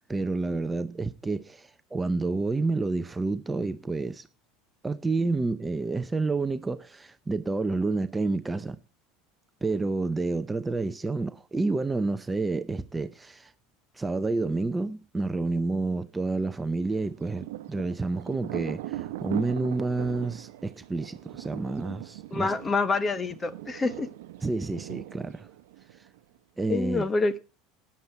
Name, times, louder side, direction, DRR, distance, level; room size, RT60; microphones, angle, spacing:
voice 1, 0.1-4.3 4.8-8.8 9.6-13.5 13.9-22.5 24.4-25.5 26.6-27.1, right 3 dB, 10° right, 0.7 m, -29 dB
Thunder, 16.9-26.4, right 15 dB, 85° right, 0.8 m, -40 dB
voice 2, 22.3-24.1 26.7-27.4, left 3 dB, 20° left, 1.0 m, -27 dB
13.0 x 9.7 x 4.4 m
supercardioid pair, 120°, 0 cm